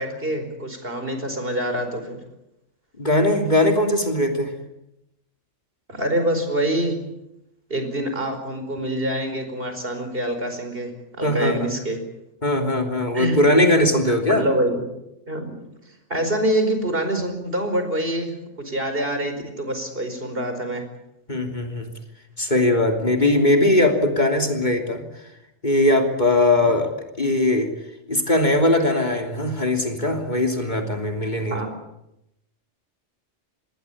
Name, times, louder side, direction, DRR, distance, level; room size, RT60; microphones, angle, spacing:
voice 1, 0.0-2.2 5.9-7.0 7.7-10.9 11.2-12.0 13.1-13.4 13.9-14.0 14.3-14.8 15.3-15.5 16.1-18.3 18.6-20.8 26.6-26.7 31.5-31.7, right 1 dB, 50° right, 6 dB, 5.1 m, -25 dB
voice 2, 3.0-4.5 11.2-11.7 12.4-14.4 21.3-21.9 22.4-25.0 25.6-26.9 27.2-27.7 28.1-31.6, left 1 dB, 40° left, 3 dB, 3.3 m, -20 dB
26.5 x 20.5 x 8.6 m, 0.88 s
omnidirectional pair, 1.3 m